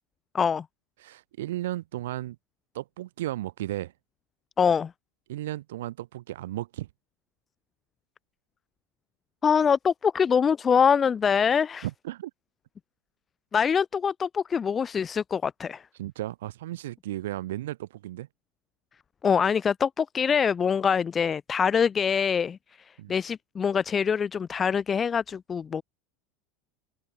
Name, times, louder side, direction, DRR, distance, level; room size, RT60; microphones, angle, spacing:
voice 1, 1.0-2.4 2.7-3.9 5.3-6.9 11.8-12.3 15.9-18.3 23.0-23.1, right 15 dB, 85° right, 2.7 m, -34 dB
voice 2, 4.6-4.9 9.4-11.9 13.5-15.8 19.2-22.6 23.1-25.8, left 6 dB, 25° left, 0.4 m, -24 dB
supercardioid pair, 120°, 0 cm